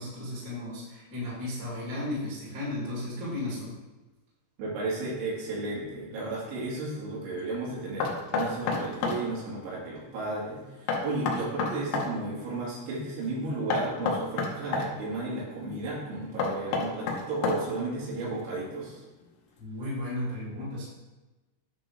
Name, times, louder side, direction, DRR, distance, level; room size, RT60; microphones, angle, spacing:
voice 1, 0.0-3.7 19.6-20.9, left 1 dB, 25° right, -8 dB, 2.5 m, -34 dB
voice 2, 4.6-19.0, right 2 dB, 70° right, -5 dB, 4.4 m, -34 dB
Knock, 8.0-9.2 10.9-12.1 13.7-14.9 16.4-17.8, left 4 dB, 75° left, 2.4 m, -29 dB
9.9 x 3.8 x 5.0 m, 1.1 s
omnidirectional pair, 5.8 m